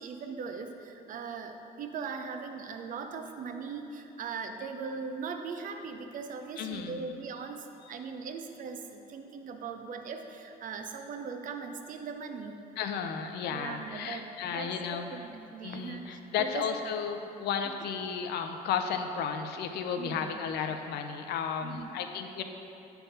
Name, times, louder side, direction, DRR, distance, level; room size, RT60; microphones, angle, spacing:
voice 1, 0.0-12.6 13.5-16.7 17.6-17.7 20.0-20.4 21.6-21.9, right 5 dB, 50° right, 6 dB, 0.6 m, -40 dB
voice 2, 6.6-7.0 7.8-7.9 12.8-15.3 15.6-22.4, left 7 dB, 75° left, 6 dB, 0.6 m, -34 dB
9.0 x 3.4 x 5.7 m, 3.0 s
cardioid pair, 110°, 17 cm